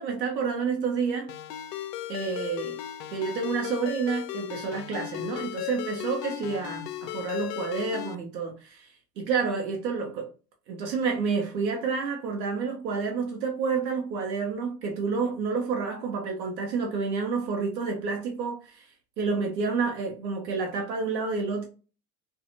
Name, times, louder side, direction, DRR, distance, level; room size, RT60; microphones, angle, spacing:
voice 1, 0.0-1.3 2.1-2.8 3.1-10.3 10.7-18.9 19.2-21.7, right 5 dB, 80° right, 0.8 m, -29 dB
Ringtone, 1.3-8.2, left 13 dB, 75° left, 0.5 m, -36 dB
2.6 x 2.4 x 2.6 m
hypercardioid pair, 90°, 50 cm